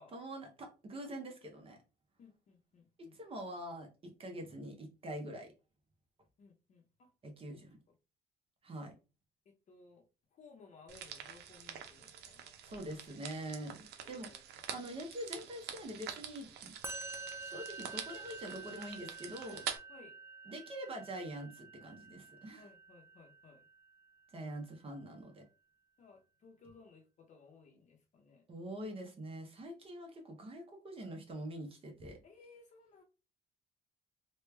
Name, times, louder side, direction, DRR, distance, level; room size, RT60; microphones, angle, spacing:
voice 1, 0.1-1.8 3.1-5.5 7.2-7.8 8.6-8.9 12.6-14.3 14.7-16.7 17.4-19.7 20.5-22.7 24.3-25.4 28.5-32.2, right 1 dB, 35° right, 0.9 m, -44 dB
voice 2, 2.2-3.2 6.4-7.1 9.4-10.1 10.3-12.4 14.0-14.5 19.9-20.2 22.6-23.7 26.0-28.4 32.2-33.0, left 4 dB, 45° left, 0.8 m, -60 dB
sound 1, 10.9-19.8, right 8 dB, 75° right, 0.6 m, -46 dB
Musical instrument, 16.8-24.1, right 4 dB, 15° right, 0.4 m, -49 dB
3.2 x 2.3 x 3.2 m
cardioid pair, 110°, 17 cm